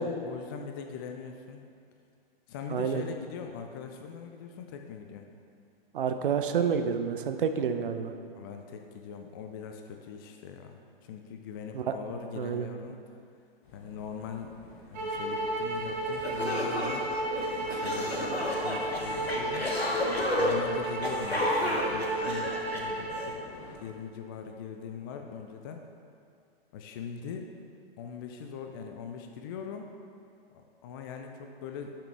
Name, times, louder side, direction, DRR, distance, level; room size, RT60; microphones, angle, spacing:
voice 1, 0.0-1.6 2.5-5.3 8.3-13.0 13.7-17.1 17.6-19.6 20.4-23.4 23.8-25.8 26.7-27.5 28.0-29.9 30.5-32.0, left 6 dB, 25° left, 4 dB, 0.4 m, -41 dB
voice 2, 2.7-3.0 5.9-8.1 11.7-11.9 12.4-12.7, right 7 dB, 60° right, 8 dB, 0.7 m, -29 dB
sound 1, 13.6-23.8, left 3 dB, 55° left, 1.5 m, -50 dB
sound 2, 14.9-23.3, right 2 dB, 45° right, 2.0 m, -33 dB
sound 3, 15.8-15.9 16.2-23.3, left 1 dB, 90° left, 1.2 m, -32 dB
11.5 x 5.8 x 3.3 m, 2.4 s
figure-of-eight pair, 110°, 30 cm